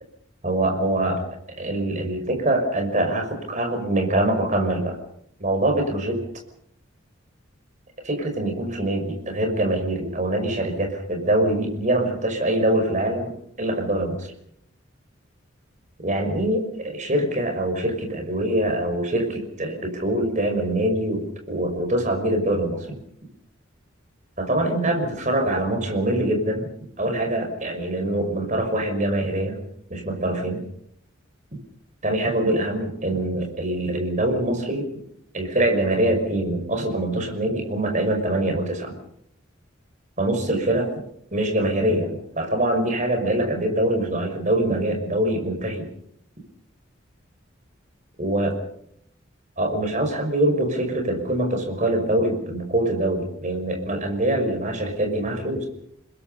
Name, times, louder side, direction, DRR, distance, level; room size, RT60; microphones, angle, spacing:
voice 1, 0.4-1.2 1.6-5.0 5.4-6.2 8.0-13.3 13.6-14.3 16.0-22.9 24.4-26.7 27.0-29.6 29.9-30.6 32.0-34.9 35.3-38.9 40.2-40.9 41.3-42.1 42.4-45.9 48.2-48.5 49.6-55.7, right 1 dB, 40° right, 4 dB, 5.8 m, -24 dB
29.0 x 21.5 x 5.6 m, 0.70 s
head